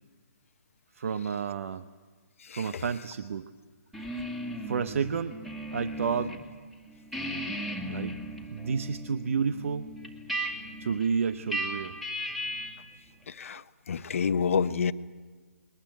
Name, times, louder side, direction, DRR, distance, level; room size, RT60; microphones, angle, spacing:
voice 1, 0.9-1.8 2.5-3.5 4.7-5.4 5.7-6.4 7.9-8.2 8.5-9.9 10.8-12.0, right 6 dB, 60° right, 12 dB, 0.9 m, -30 dB
sound 1, 3.9-6.4 6.7-12.9, equal, ahead, 2.2 m, -37 dB
voice 2, 13.9-14.9, left 6 dB, 60° left, 13 dB, 0.9 m, -27 dB
21.5 x 20.0 x 8.8 m, 1.5 s
hypercardioid pair, 145°, 8 cm